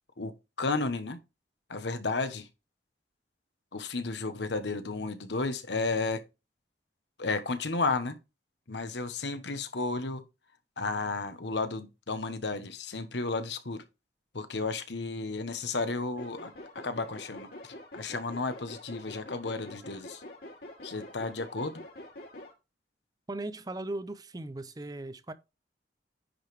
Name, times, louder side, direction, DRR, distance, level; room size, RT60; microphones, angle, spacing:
voice 1, 0.6-1.2 1.7-2.5 3.7-6.2 7.2-8.2 8.7-10.2 10.8-13.8 14.3-20.2 20.8-21.8, left 3 dB, 85° left, 1.1 m, -33 dB
sound 1, 16.2-22.5, left 1 dB, 60° left, 3.3 m, -46 dB
voice 2, 23.3-25.3, right 2 dB, 20° right, 0.6 m, -38 dB
10.0 x 5.2 x 3.3 m
head